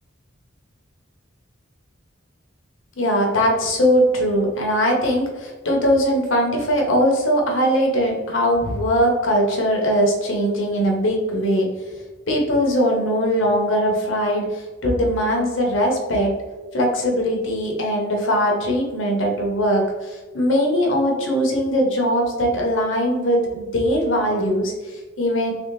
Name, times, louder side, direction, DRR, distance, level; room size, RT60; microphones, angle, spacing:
voice 1, 3.0-11.7 12.3-16.3 16.7-25.5, equal, 75° left, 1 dB, 0.9 m, -20 dB
3.5 x 3.4 x 2.5 m, 1.3 s
head